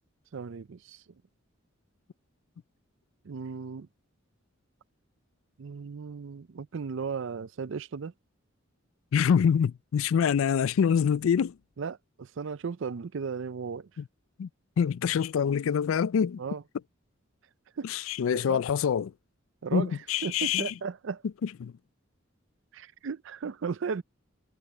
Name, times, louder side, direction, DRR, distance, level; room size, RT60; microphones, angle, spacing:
voice 1, 0.3-1.0 3.2-3.9 5.6-8.1 11.8-13.9 16.4-16.6 17.8-17.9 18.3-18.6 19.6-21.2 22.7-24.0, right 5 dB, 65° right, 0.5 m, -35 dB
voice 2, 9.1-11.5 14.4-14.5 14.8-16.4 17.9-19.1 19.7-20.7 21.6-21.7, left 7 dB, 75° left, 0.3 m, -25 dB
head